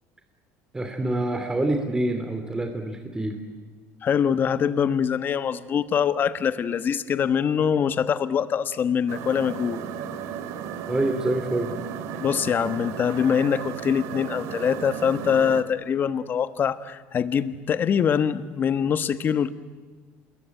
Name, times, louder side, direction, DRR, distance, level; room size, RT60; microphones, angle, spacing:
voice 1, 0.7-3.4 10.9-11.7, right 1 dB, 15° right, 5 dB, 2.7 m, -26 dB
voice 2, 4.0-9.8 12.2-19.5, left 7 dB, 40° left, 13 dB, 1.3 m, -24 dB
sound 1, 9.1-15.6, right 8 dB, 75° right, 2.4 m, -34 dB
28.0 x 21.0 x 9.2 m, 1.4 s
cardioid pair, 120°, 5 cm